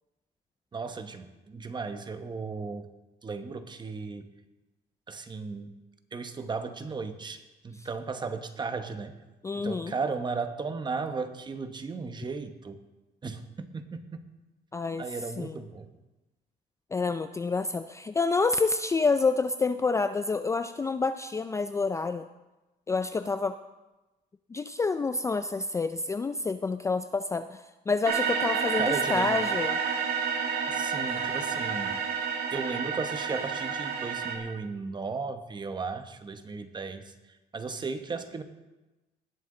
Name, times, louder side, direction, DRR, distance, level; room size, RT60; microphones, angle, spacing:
voice 1, 0.7-2.9 3.2-4.3 5.1-5.7 6.1-9.2 9.5-12.8 13.2-14.2 15.0-15.9 28.8-29.4 30.7-32.0 32.5-37.1 37.5-38.4, right 4 dB, 25° right, 9 dB, 1.0 m, -35 dB
voice 2, 9.4-9.9 14.7-15.0 15.4-15.7 16.9-22.3 22.9-23.6 24.5-29.8, left 4 dB, 15° left, 10 dB, 0.4 m, -28 dB
sound 1, 28.0-34.4, right 6 dB, 70° right, 1.8 m, -30 dB
19.0 x 7.4 x 3.8 m, 1.1 s
cardioid pair, 110°, 17 cm